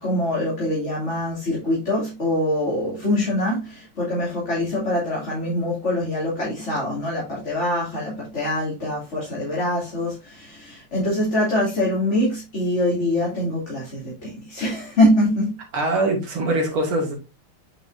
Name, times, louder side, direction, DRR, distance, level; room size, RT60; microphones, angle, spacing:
voice 1, 0.0-15.6, left 1 dB, 30° left, 3.2 m, -24 dB
voice 2, 15.7-17.1, right 2 dB, 70° right, 3.1 m, -22 dB
8.8 x 5.7 x 2.7 m
omnidirectional pair, 2.4 m